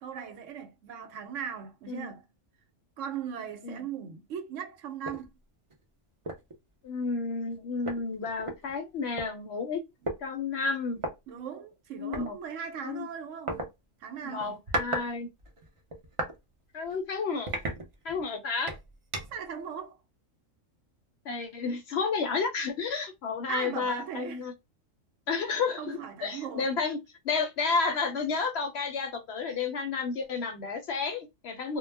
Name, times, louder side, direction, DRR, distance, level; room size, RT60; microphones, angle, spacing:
voice 1, 0.0-2.2 3.0-5.3 11.3-13.7 14.0-14.6 19.3-20.0 23.5-24.4 25.4-25.5 25.8-26.7, right 7 dB, 75° right, 0.9 m, -38 dB
sound 1, 5.0-5.2 5.7-5.8 6.2-6.5 7.5-7.6 7.8-9.3 10.0-10.2 11.0-11.1 12.1-12.3 13.5-13.7 14.4-15.1 15.4-16.4 16.8-17.0 17.5-18.3 18.7-19.5, right 1 dB, 50° right, 0.4 m, -34 dB
voice 2, 6.8-9.8 10.2-11.0 12.0-12.3 12.8-13.1 14.2-15.3 16.7-17.5 18.0-18.7 21.3-24.5 25.3-27.0 27.2-31.8, left 4 dB, 65° left, 0.7 m, -31 dB
2.2 x 2.0 x 3.2 m
omnidirectional pair, 1.4 m